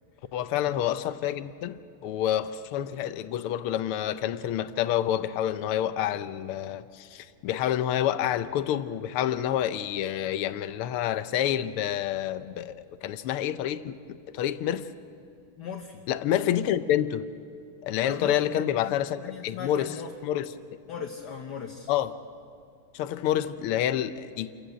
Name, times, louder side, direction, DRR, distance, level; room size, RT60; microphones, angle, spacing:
voice 1, 0.3-14.9 16.1-17.3 17.8-19.9 20.2-20.5 21.9-22.1 22.9-24.5, left 11 dB, 90° left, 1.7 m, -28 dB
voice 2, 15.6-16.0 18.0-18.9 19.2-20.1 20.9-21.9, left 7 dB, 55° left, 1.5 m, -38 dB
28.0 x 15.0 x 8.1 m
omnidirectional pair, 2.4 m